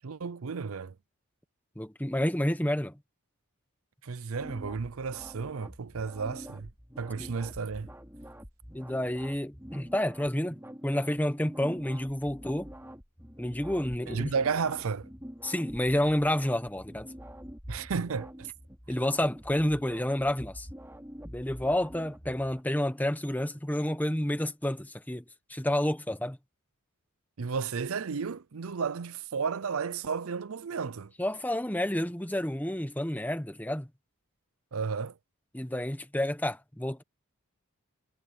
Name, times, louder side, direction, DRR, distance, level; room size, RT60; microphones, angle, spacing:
voice 1, 0.0-0.9 4.0-6.7 7.0-7.9 14.1-15.1 17.7-18.5 27.4-31.1 34.7-35.1, right 5 dB, 70° right, 0.6 m, -33 dB
voice 2, 1.8-3.0 7.2-7.3 8.7-12.7 13.4-14.3 15.4-17.1 18.9-20.7 21.2-25.2 25.5-26.4 31.2-33.9 35.5-37.0, left 1 dB, 10° left, 1.2 m, -29 dB
sound 1, 4.3-22.6, equal, 10° right, 5.0 m, -46 dB
head